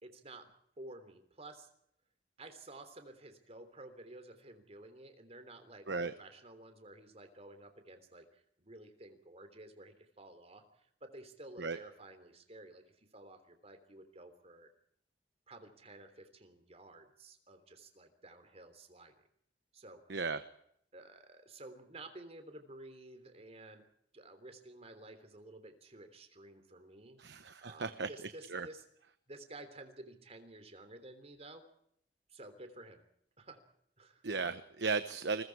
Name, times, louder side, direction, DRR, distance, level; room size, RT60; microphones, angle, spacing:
voice 1, 0.0-0.5 0.8-1.7 2.4-14.7 15.5-19.3 19.7-20.1 20.9-23.9 24.1-27.2 27.6-28.8 29.3-31.6 32.3-33.0 33.4-33.6 34.0-34.2, right 2 dB, 35° right, 8 dB, 3.4 m, -53 dB
voice 2, 20.1-20.4 27.2-28.1 28.5-28.7 34.2-35.4, right 4 dB, 75° right, 11 dB, 1.0 m, -35 dB
29.0 x 21.5 x 4.8 m, 0.70 s
head